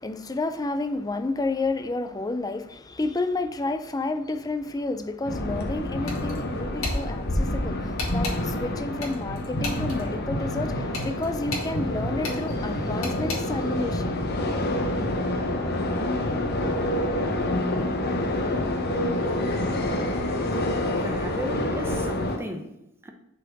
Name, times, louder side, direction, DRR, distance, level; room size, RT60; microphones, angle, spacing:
voice 1, 0.0-14.2, left 2 dB, 20° left, 0.4 m, -30 dB
sound 1, 5.2-22.4, left 1 dB, 50° left, 0.8 m, -27 dB
sound 2, 6.1-6.4 6.8-7.0 8.0-8.4 9.0-10.0 10.9-11.7 12.2-12.4 13.0-13.4, left 3 dB, 80° left, 1.9 m, -33 dB
voice 2, 20.7-23.1, equal, 10° right, 0.8 m, -36 dB
5.4 x 4.3 x 6.0 m
head